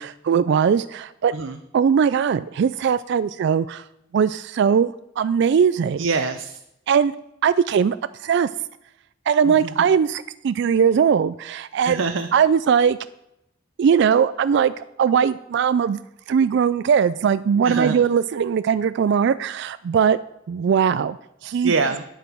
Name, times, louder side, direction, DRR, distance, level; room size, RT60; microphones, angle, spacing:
voice 1, 0.0-1.3 1.7-3.8 4.1-6.0 6.9-7.1 7.4-8.5 9.3-12.0 12.3-13.0 13.8-16.0 16.3-20.2 20.5-21.7, right 7 dB, 60° right, 14 dB, 0.3 m, -20 dB
voice 2, 6.0-6.6 9.4-9.9 11.8-12.3 17.6-18.0 21.6-22.0, right 4 dB, 85° right, 7 dB, 0.7 m, -25 dB
9.0 x 8.1 x 6.1 m, 0.82 s
head